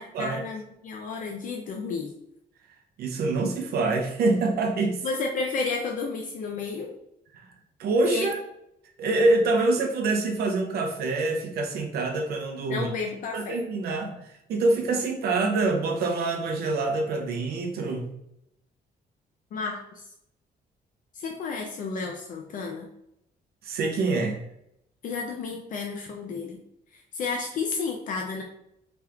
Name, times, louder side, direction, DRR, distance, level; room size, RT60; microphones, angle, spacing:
voice 1, 0.0-2.1 5.0-6.9 8.0-8.3 12.7-13.6 19.5-20.0 21.1-22.9 25.0-26.6 26.9-28.4, left 4 dB, 55° left, 1 dB, 0.4 m, -32 dB
voice 2, 3.0-5.0 7.3-7.5 7.8-8.4 9.0-12.9 13.3-18.1 23.6-24.4, right 3 dB, 70° right, 2 dB, 0.5 m, -25 dB
3.4 x 2.9 x 2.3 m, 0.80 s
cardioid pair, 175°, 17 cm